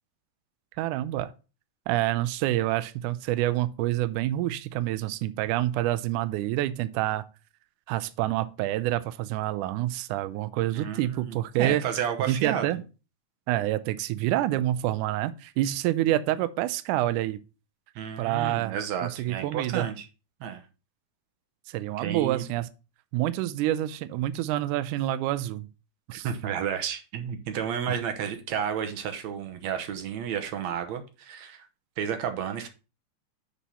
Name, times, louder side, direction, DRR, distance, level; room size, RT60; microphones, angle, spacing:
voice 1, 0.8-1.3 1.9-7.2 7.9-11.8 12.3-12.8 13.5-17.4 18.2-19.9 21.7-22.7 23.1-25.7 26.1-26.3 27.9-28.0, right 14 dB, 80° right, 2.0 m, -27 dB
voice 2, 10.7-12.8 18.0-20.1 20.4-20.6 22.0-22.4 26.1-31.7 32.0-32.7, right 8 dB, 65° right, 2.1 m, -32 dB
7.0 x 4.6 x 5.5 m
omnidirectional pair, 3.8 m